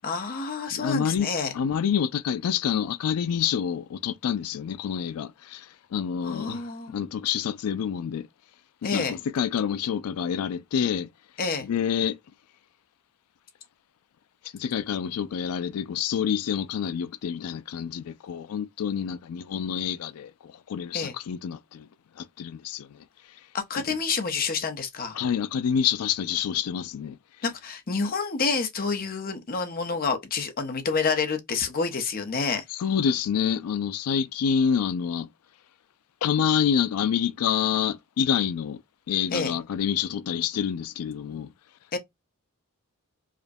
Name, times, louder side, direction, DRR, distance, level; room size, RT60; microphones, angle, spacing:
voice 1, 0.0-1.5 6.2-6.9 8.8-9.2 11.4-11.7 20.9-21.1 23.5-25.2 27.4-32.6 39.3-39.6 41.9-42.0, left 4 dB, 40° left, 0.7 m, -28 dB
voice 2, 0.7-1.3 1.5-8.3 8.9-11.1 11.6-12.1 14.5-21.9 22.2-23.0 23.7-23.8 25.1-27.2 32.8-35.3 36.2-38.8 39.1-41.5, left 8 dB, 85° left, 0.4 m, -27 dB
4.9 x 2.1 x 2.6 m
head